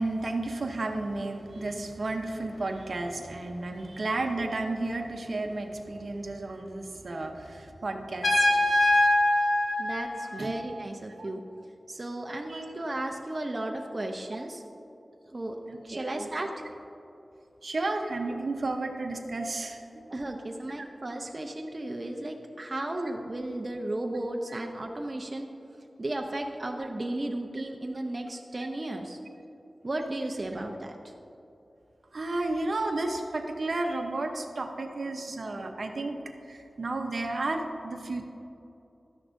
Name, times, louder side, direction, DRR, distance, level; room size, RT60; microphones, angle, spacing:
voice 1, 0.0-8.7 10.4-10.5 11.2-11.3 12.5-12.7 15.7-16.3 17.6-20.1 24.5-24.6 32.1-36.2 36.5-38.2, right 2 dB, 65° right, 4 dB, 0.8 m, -32 dB
Trumpet, 8.2-10.9, left 1 dB, 70° left, 1.6 m, -24 dB
voice 2, 9.8-11.4 11.9-14.6 15.3-15.6 15.8-16.5 20.1-25.5 26.0-29.2 29.8-30.9, right 1 dB, 40° right, 2 dB, 0.7 m, -34 dB
12.5 x 9.8 x 2.6 m, 2.9 s
wide cardioid pair, 60°, 0 cm